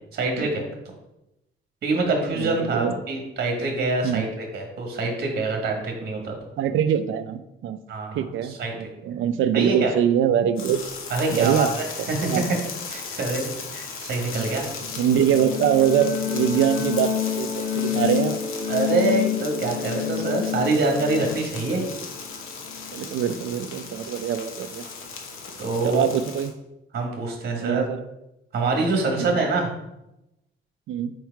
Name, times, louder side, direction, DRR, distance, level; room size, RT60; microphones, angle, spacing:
voice 1, 0.1-0.6 1.8-6.4 7.9-8.7 9.5-9.9 11.1-12.6 12.9-14.7 18.7-21.8 25.6-26.0 26.9-27.8 28.5-29.7, right 3 dB, 50° right, 2 dB, 1.5 m, -25 dB
voice 2, 2.3-2.9 4.0-4.2 6.6-7.8 8.1-10.8 11.3-11.7 12.2-12.4 14.4-14.5 15.0-18.4 22.9-24.8 25.8-26.5 27.6-28.0 29.2-29.4 30.9-31.1, right 9 dB, 70° right, 11 dB, 0.5 m, -23 dB
sound 1, 10.6-26.5, left 5 dB, 85° left, 1.0 m, -37 dB
sound 2, 14.8-23.4, left 10 dB, 50° left, 0.8 m, -29 dB
4.6 x 4.6 x 4.6 m, 0.89 s
cardioid pair, 165°, 21 cm